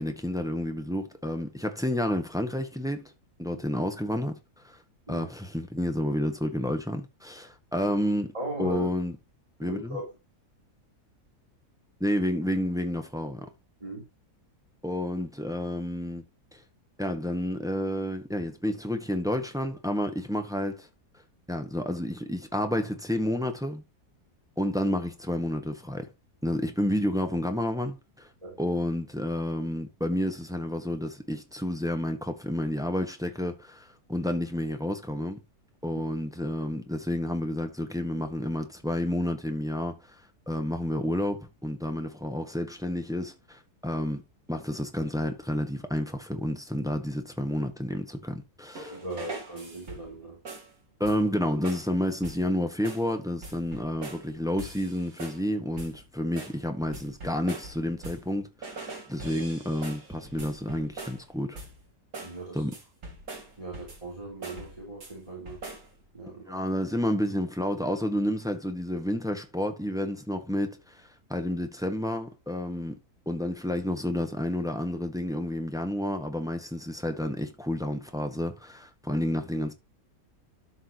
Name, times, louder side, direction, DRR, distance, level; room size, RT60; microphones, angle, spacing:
voice 1, 0.0-3.1 3.4-4.4 4.6-4.8 5.1-8.3 8.6-9.1 9.6-10.0 12.0-13.4 14.8-16.2 16.5-16.6 17.0-20.9 21.5-23.8 24.6-26.1 26.4-28.3 28.6-35.4 35.8-40.0 40.5-44.2 44.5-49.0 51.0-61.6 62.5-62.7 66.5-73.0 73.3-79.7, equal, ahead, 1.2 m, -30 dB
voice 2, 8.3-8.9 9.6-10.1 13.8-14.0 28.4-28.6 35.9-36.0 48.9-50.4 62.2-62.7 63.6-65.6 66.1-66.6, right 1 dB, 20° right, 3.4 m, -38 dB
sound 1, 48.8-50.2 50.5-50.7 51.0-51.4 51.6-51.9 52.2-52.5 52.8-53.1 53.4-54.3 54.6-55.5 55.8-56.0 56.4-58.3 58.6-61.3 61.6-61.9 62.1-62.4 62.7-64.1 64.4-65.1 65.5-65.9, right 2 dB, 65° right, 2.9 m, -42 dB
12.5 x 5.6 x 2.9 m
omnidirectional pair, 1.7 m